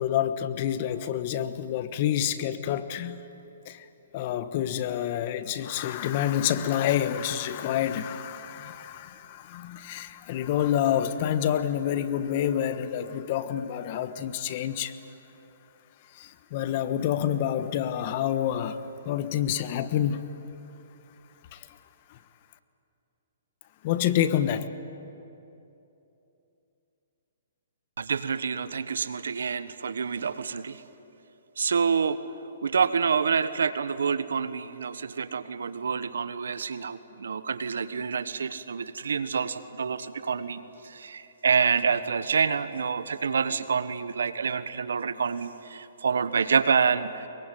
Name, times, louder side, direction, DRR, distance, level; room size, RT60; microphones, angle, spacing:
voice 1, 0.0-3.2 3.6-3.9 4.1-14.9 16.1-20.3 21.5-21.8 22.1-22.2 23.8-24.7, left 10 dB, 40° left, 12 dB, 1.2 m, -28 dB
voice 2, 28.0-30.8 31.6-32.2 32.6-47.3, right 6 dB, 85° right, 13 dB, 1.2 m, -27 dB
23.0 x 22.5 x 9.4 m, 2.9 s
hypercardioid pair, 145°, 0 cm